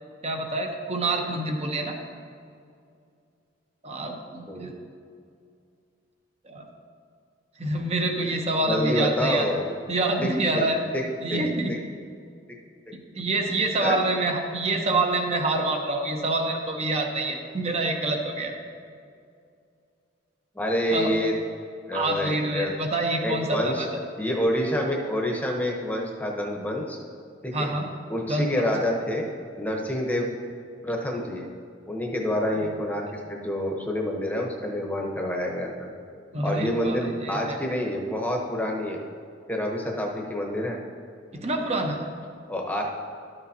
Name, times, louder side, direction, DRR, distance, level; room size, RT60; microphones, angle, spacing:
voice 1, 0.2-2.0 3.8-4.8 6.4-6.7 7.6-9.5 9.9-10.8 11.2-11.7 13.1-18.5 20.9-21.1 21.9-23.9 27.5-27.9 28.3-28.5 32.5-32.7 36.3-37.6 41.3-42.0, right 2 dB, 35° right, 3 dB, 0.9 m, -26 dB
voice 2, 8.7-9.7 10.2-10.6 10.9-11.0 11.3-11.4 11.7-11.8 13.8-14.0 20.5-21.3 21.9-22.7 23.2-23.9 24.2-27.0 27.4-27.7 28.1-29.2 29.6-30.3 30.8-31.5 31.9-35.9 36.4-39.0 39.5-40.8 42.5-42.8, left 1 dB, 10° left, 0 dB, 0.9 m, -27 dB
12.0 x 6.8 x 2.8 m, 2.4 s
head